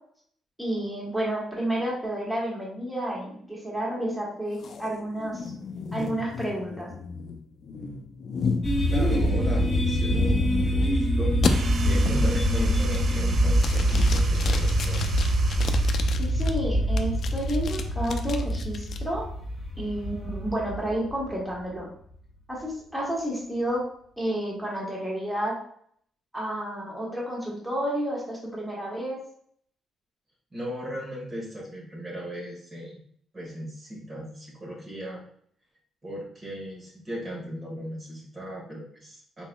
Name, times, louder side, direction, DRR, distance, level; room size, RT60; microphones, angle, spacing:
voice 1, 0.6-5.5 5.9-6.9 16.2-19.2 19.8-21.9 22.5-23.8 24.2-25.6 26.3-29.2, right 1 dB, 5° right, -4 dB, 1.5 m, -30 dB
sound 1, 4.6-10.9 11.4-11.5 12.0-12.4 12.8-13.2 13.6-16.5 17.0-19.0, left 5 dB, 60° left, 0.4 m, -33 dB
sound 2, 8.6-21.5, equal, 30° left, 1.4 m, -24 dB
voice 2, 8.9-15.2 30.5-33.0 33.3-35.2 36.0-39.5, equal, 35° right, -3 dB, 1.4 m, -37 dB
sound 3, 11.4-16.2, right 5 dB, 55° right, 0.4 m, -40 dB
4.0 x 3.9 x 2.2 m, 0.62 s
cardioid pair, 90°, 0 cm